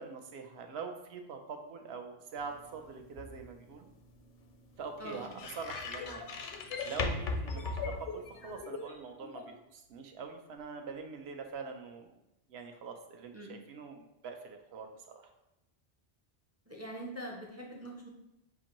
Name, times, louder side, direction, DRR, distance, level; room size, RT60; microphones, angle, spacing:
voice 1, 0.0-3.9 4.8-6.2 6.8-12.1 12.5-15.3, right 5 dB, 75° right, 4 dB, 0.8 m, -44 dB
sound 1, 2.4-8.6, left 3 dB, 60° left, 0.6 m, -40 dB
sound 2, 4.1-4.2 5.5-9.5, left 5 dB, 85° left, 1.0 m, -43 dB
voice 2, 16.7-18.1, equal, 25° right, -2 dB, 0.3 m, -43 dB
6.0 x 2.5 x 2.9 m, 0.91 s
omnidirectional pair, 1.1 m